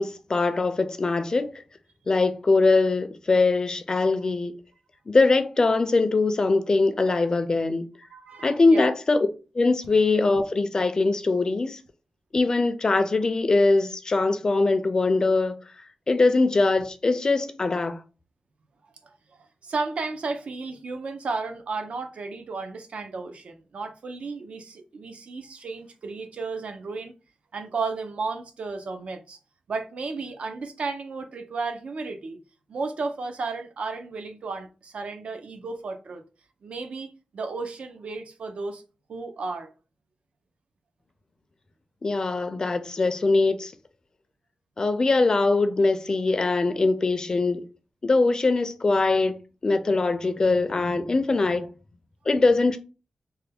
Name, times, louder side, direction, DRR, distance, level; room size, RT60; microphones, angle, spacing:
voice 1, 0.0-1.5 2.1-4.5 5.1-7.9 8.4-9.3 9.5-11.8 12.3-15.5 16.1-18.0 42.0-43.7 44.8-47.6 48.0-49.4 49.6-51.7 52.3-52.8, left 3 dB, 35° left, 0.4 m, -22 dB
voice 2, 8.1-9.0 19.4-27.1 27.5-29.4 29.7-32.4 32.7-36.2 36.6-38.8 39.1-39.7, right 4 dB, 75° right, 0.5 m, -33 dB
3.2 x 2.2 x 3.3 m
wide cardioid pair, 160°, 2 cm